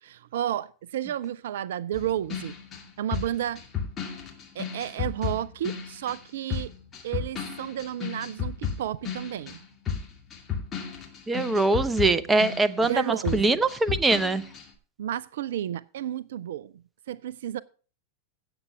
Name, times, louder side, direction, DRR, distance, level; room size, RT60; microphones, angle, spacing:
voice 1, 0.0-2.6 3.0-3.6 4.6-6.7 7.0-9.6 12.8-13.6 15.0-16.7 17.1-17.6, right 11 dB, 60° right, 0.4 m, -32 dB
sound 1, 1.9-6.2 6.5-13.0 13.2-14.7, left 7 dB, 25° left, 2.4 m, -34 dB
voice 2, 11.3-14.4, right 3 dB, 10° right, 0.7 m, -23 dB
17.0 x 6.9 x 3.4 m
figure-of-eight pair, 90°, 0 cm